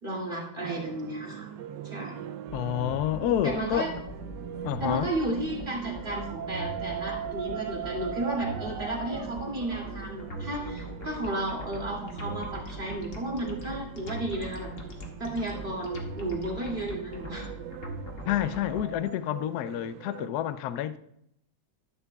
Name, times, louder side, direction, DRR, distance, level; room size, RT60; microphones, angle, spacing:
voice 1, 0.0-1.5 1.8-2.2 3.4-3.9 4.8-14.7 15.2-17.5, right 1 dB, 25° right, 2.6 m, -33 dB
sound 1, 0.6-20.3, right 10 dB, 75° right, 1.0 m, -41 dB
voice 2, 2.5-3.9 4.6-5.1 18.3-21.0, left 11 dB, 75° left, 0.9 m, -29 dB
sound 2, 2.5-18.8, equal, 40° left, 1.8 m, -40 dB
13.0 x 10.5 x 2.3 m
omnidirectional pair, 2.2 m